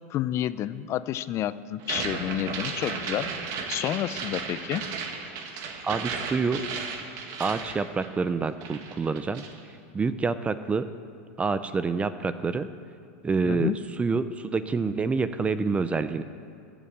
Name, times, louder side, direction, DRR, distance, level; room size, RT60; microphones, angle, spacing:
voice 1, 0.1-3.3 3.7-4.9 13.4-13.8, left 12 dB, 35° left, 16 dB, 0.5 m, -30 dB
sound 1, 1.8-8.4 8.6-9.6, right 5 dB, 50° right, 1.7 m, -34 dB
voice 2, 5.8-6.6 7.4-9.4 9.9-10.9 11.4-12.7 13.2-13.7 14.0-16.2, right 4 dB, 15° right, 12 dB, 0.5 m, -27 dB
15.0 x 7.1 x 7.4 m, 2.5 s
supercardioid pair, 120°, 8 cm